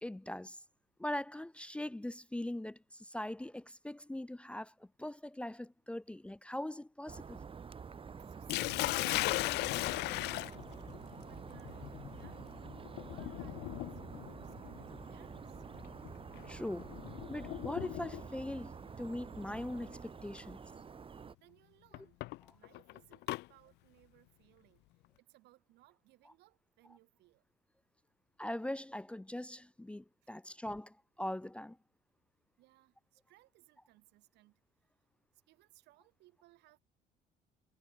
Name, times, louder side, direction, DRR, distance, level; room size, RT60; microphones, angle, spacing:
voice 1, 0.0-0.6 1.0-7.4 16.5-17.0 17.3-20.6 28.4-31.8, left 1 dB, 5° left, 0.7 m, -41 dB
sound 1, 7.1-21.4, right 6 dB, 30° right, 2.8 m, -48 dB
voice 2, 8.2-12.7 13.0-15.6 21.4-22.2 22.5-27.4 30.2-30.3 32.6-34.7 35.3-36.8, right 18 dB, 85° right, 4.7 m, -66 dB
Sink (filling or washing), 8.5-18.4 19.5-19.9 20.4-20.5 21.9-23.4, left 20 dB, 85° left, 0.6 m, -38 dB
cardioid pair, 110°, 17 cm